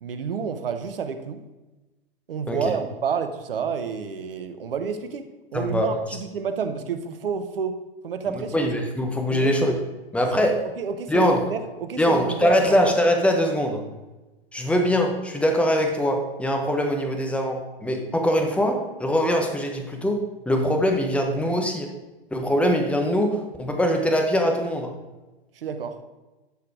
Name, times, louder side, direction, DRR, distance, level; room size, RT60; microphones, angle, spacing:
voice 1, 0.0-1.4 2.3-7.8 8.0-8.7 9.3-9.5 10.8-12.8 25.6-25.9, right 6 dB, 65° right, 9 dB, 1.0 m, -30 dB
voice 2, 5.5-5.9 8.3-9.8 10.1-10.6 11.1-11.4 12.0-13.8 14.5-21.9 22.3-24.9, equal, 5° left, 3 dB, 1.2 m, -22 dB
11.5 x 4.8 x 4.8 m, 1.1 s
figure-of-eight pair, 100°, 31 cm